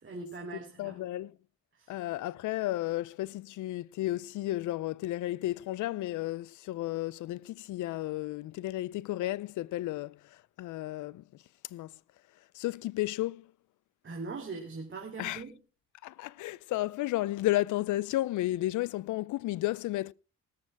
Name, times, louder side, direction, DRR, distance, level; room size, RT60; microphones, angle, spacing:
voice 1, 0.0-1.0 1.7-1.9 14.0-15.6, right 4 dB, 40° right, 3.3 m, -41 dB
voice 2, 0.5-1.3 1.9-11.2 11.7-11.9 12.5-13.5 15.2-15.4 16.0-20.1, left 16 dB, 75° left, 0.5 m, -33 dB
18.5 x 7.6 x 4.6 m
cardioid pair, 90°, 30 cm